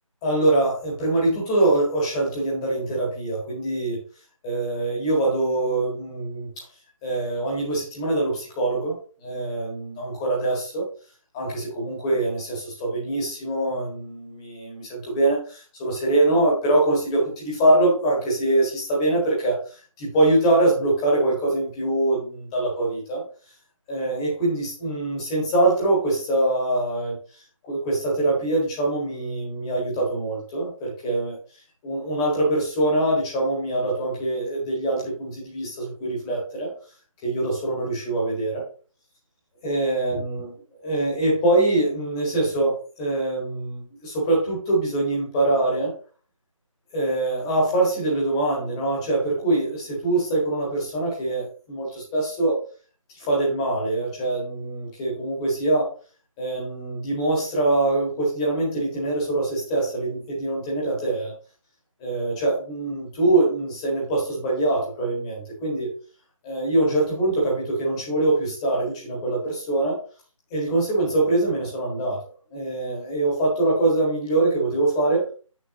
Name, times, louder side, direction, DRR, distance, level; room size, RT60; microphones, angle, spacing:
voice 1, 0.2-4.0 4.4-6.6 7.0-10.8 11.3-19.6 20.0-23.2 23.9-27.2 27.6-31.4 31.8-36.7 37.2-38.6 39.6-40.5 40.8-45.9 46.9-52.6 53.2-55.9 56.4-61.3 62.0-65.9 66.4-70.0 70.5-72.2 72.5-75.3, right 2 dB, 10° left, -4 dB, 1.7 m, -23 dB
7.8 x 6.3 x 2.9 m, 0.38 s
figure-of-eight pair, 160°, 17 cm